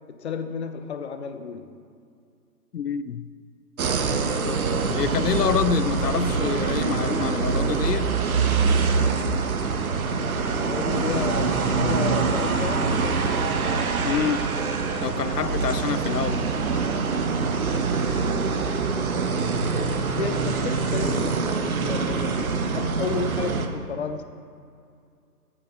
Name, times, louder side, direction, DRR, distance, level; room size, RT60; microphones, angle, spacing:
voice 1, 0.1-1.7 10.5-13.3 19.6-24.2, left 6 dB, 40° left, 1.0 m, -32 dB
voice 2, 2.7-3.3 4.2-8.2 14.0-14.4 15.0-16.5, left 8 dB, 75° left, 0.7 m, -27 dB
sound 1, 3.8-23.7, right 4 dB, 60° right, 1.4 m, -24 dB
14.5 x 9.1 x 4.6 m
hypercardioid pair, 150°, 49 cm